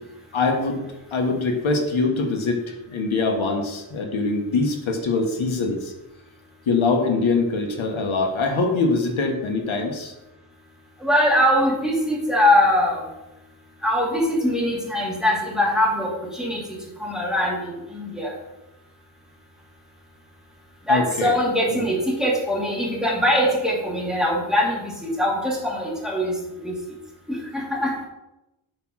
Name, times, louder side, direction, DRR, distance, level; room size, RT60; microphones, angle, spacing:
voice 1, 0.3-0.8 1.1-5.9 6.7-10.1 20.9-21.3 21.7-21.8, left 3 dB, 85° left, 2 dB, 1.3 m, -23 dB
voice 2, 11.0-13.0 13.8-18.4 20.9-26.8 27.3-28.1, left 1 dB, ahead, -5 dB, 2.4 m, -22 dB
7.3 x 3.5 x 6.2 m, 0.95 s
wide cardioid pair, 105°, 46 cm